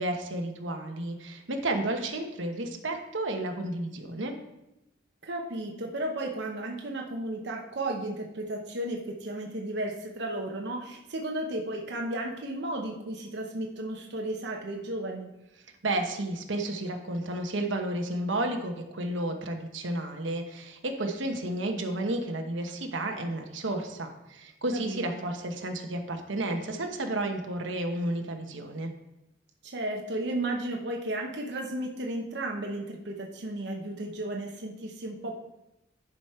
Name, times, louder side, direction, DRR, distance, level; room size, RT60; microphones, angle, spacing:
voice 1, 0.0-4.3 15.8-28.9, right 1 dB, 90° right, 4 dB, 1.1 m, -32 dB
voice 2, 5.2-15.3 24.7-25.3 29.6-35.3, right 1 dB, 65° right, 1 dB, 0.9 m, -34 dB
11.0 x 5.1 x 4.4 m, 0.92 s
head